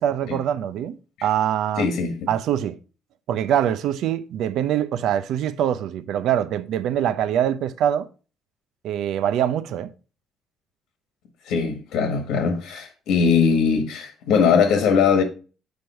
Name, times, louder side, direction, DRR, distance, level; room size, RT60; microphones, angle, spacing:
voice 1, 0.0-1.9 2.3-2.8 3.3-8.1 8.8-9.9, right 10 dB, 70° right, 0.6 m, -24 dB
voice 2, 1.8-2.3 11.5-15.2, left 6 dB, 85° left, 1.6 m, -20 dB
7.9 x 5.2 x 4.3 m
cardioid pair, 160°, 0 cm